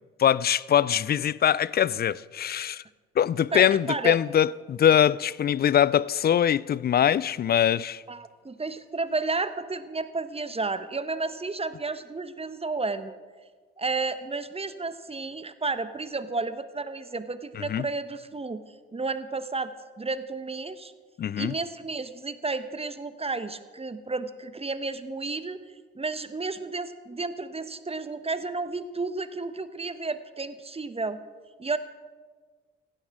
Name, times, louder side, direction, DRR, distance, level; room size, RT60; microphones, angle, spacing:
voice 1, 0.2-2.8 3.2-8.0 17.5-17.9 21.2-21.5, left 9 dB, 30° left, 0.4 m, -23 dB
voice 2, 3.5-4.2 7.5-7.6 8.1-13.1 13.8-18.6 18.9-20.9 21.4-25.6 25.9-31.2 31.6-31.8, right 3 dB, 20° right, 1.1 m, -32 dB
17.0 x 16.0 x 3.7 m
hypercardioid pair, 50°, 31 cm